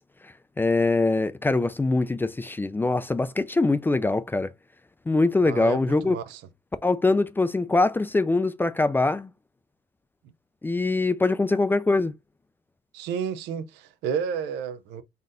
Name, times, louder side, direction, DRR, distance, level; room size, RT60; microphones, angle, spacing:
voice 1, 0.2-4.5 5.1-6.2 6.8-9.3 10.6-12.1, left 3 dB, 10° left, 0.3 m, -23 dB
voice 2, 5.4-6.4 12.9-15.0, right 7 dB, 90° right, 0.6 m, -31 dB
4.0 x 3.8 x 2.5 m
cardioid pair, 110°, 17 cm